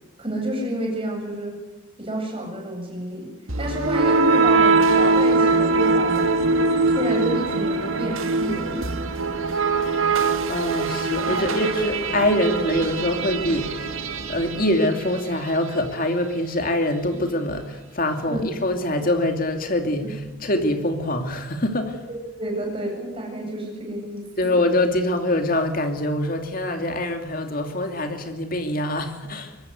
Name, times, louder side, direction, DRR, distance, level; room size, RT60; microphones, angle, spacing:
voice 1, 0.2-1.6 2.0-3.3 3.6-6.3 6.9-8.8 11.3-11.5 18.3-18.4 22.4-24.3, right 1 dB, 25° right, 0 dB, 7.9 m, -29 dB
sound 1, 3.5-15.4, right 3 dB, 80° right, 1.9 m, -22 dB
voice 2, 10.5-14.0 14.3-22.1 24.4-29.6, left 1 dB, 45° left, 6 dB, 2.6 m, -24 dB
23.5 x 19.5 x 8.2 m, 1.1 s
head